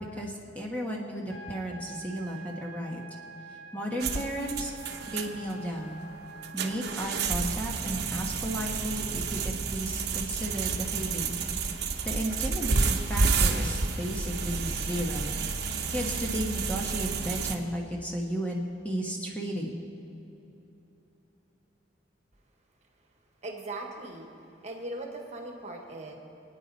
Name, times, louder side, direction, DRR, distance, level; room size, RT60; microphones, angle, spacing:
voice 1, 0.0-3.0 3.7-4.7 5.1-6.0 6.5-11.4 11.8-15.5 15.9-19.8, equal, 10° left, -1 dB, 1.3 m, -34 dB
sound 1, 1.3-7.3, right 4 dB, 80° left, 1.5 m, -47 dB
sound 2, 4.0-17.5, right 4 dB, 55° right, 1.0 m, -30 dB
voice 2, 23.4-24.3 24.6-26.1, right 2 dB, 35° right, 2 dB, 1.7 m, -39 dB
26.0 x 9.4 x 4.2 m, 3.0 s
head